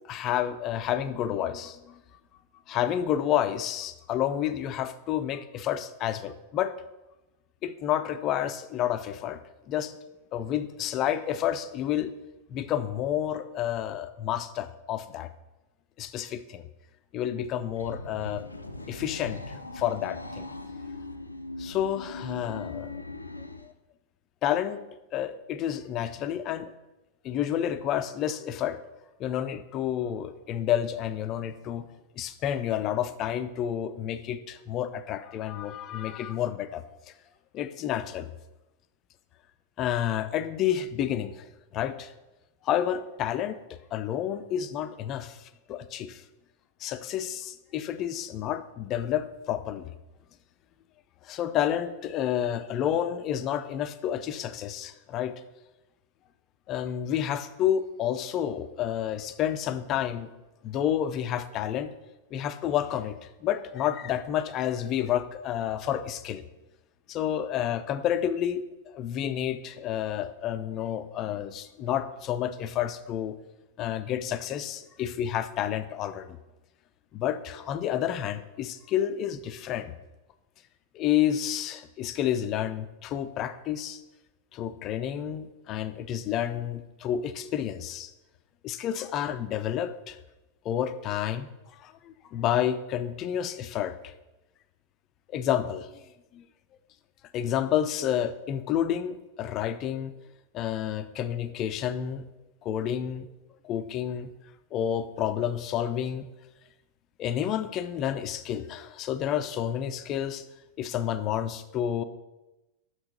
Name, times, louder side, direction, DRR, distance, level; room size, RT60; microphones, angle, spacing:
voice 1, 0.0-2.0 2.7-6.7 7.6-9.4 9.7-9.9 10.3-12.1 12.5-15.3 16.0-16.7 17.1-18.4 18.9-20.5 21.6-22.9 23.6-23.7 24.4-24.8 25.1-26.7 27.2-28.8 29.2-31.9 32.2-37.1 37.5-38.3 39.8-41.5 41.7-42.1 42.6-43.6 43.9-46.2 46.8-49.9 51.2-55.3 56.7-60.3 60.6-61.9 62.3-66.4 67.1-73.4 73.8-76.4 77.1-79.9 80.9-84.0 84.5-88.1 88.6-90.2 90.6-94.1 95.3-96.0 96.3-96.5 97.3-100.1 100.5-102.2 102.6-103.3 103.6-104.3 104.7-106.3 107.2-110.4 110.8-112.0, left 10 dB, 35° left, 11 dB, 0.5 m, -30 dB
sound 1, 17.5-23.7, left 2 dB, 85° left, 0.5 m, -40 dB
6.1 x 5.7 x 6.4 m, 1.0 s
figure-of-eight pair, 90°, 0 cm